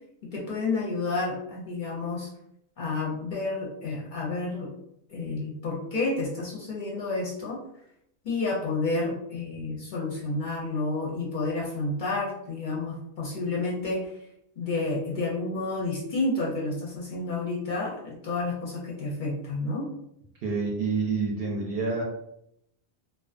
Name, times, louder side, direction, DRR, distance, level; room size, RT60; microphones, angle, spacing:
voice 1, 0.3-2.3 2.8-4.7 5.1-7.6 8.2-14.1 14.6-19.9, left 3 dB, 55° left, -3 dB, 0.6 m, -30 dB
voice 2, 20.4-22.0, right 4 dB, 65° right, -2 dB, 0.7 m, -28 dB
2.3 x 2.2 x 2.4 m, 0.76 s
omnidirectional pair, 1.2 m